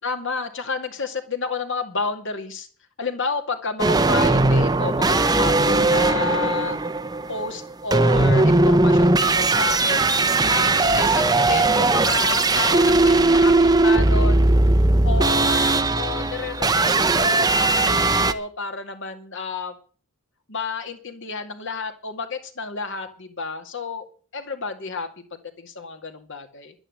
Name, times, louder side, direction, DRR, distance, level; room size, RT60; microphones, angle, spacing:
voice 1, 0.0-2.7 3.0-6.8 7.3-10.1 10.5-14.5 15.0-19.8 20.5-24.1 24.3-26.7, left 4 dB, 60° left, 6 dB, 2.3 m, -30 dB
sound 1, 3.8-18.3, right 2 dB, 15° right, 0.7 m, -19 dB
11.5 x 9.7 x 8.0 m, 0.41 s
head